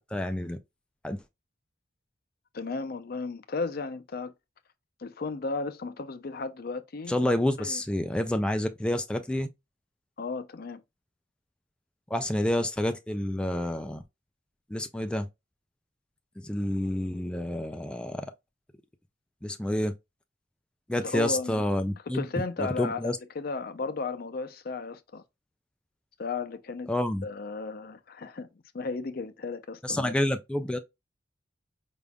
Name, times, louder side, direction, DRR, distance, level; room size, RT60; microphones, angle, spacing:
voice 1, 0.1-0.6 1.0-1.2 7.1-9.5 12.1-14.0 14.7-15.3 16.4-18.3 19.4-19.9 20.9-22.2 22.8-23.2 26.9-27.2 29.8-30.8, left 1 dB, 5° left, 0.3 m, -28 dB
voice 2, 2.5-4.3 5.0-7.2 7.6-7.8 10.2-10.8 21.0-21.6 22.1-25.2 26.2-26.9 27.2-28.5 28.7-30.2, left 4 dB, 55° left, 0.5 m, -34 dB
5.0 x 3.5 x 2.2 m
head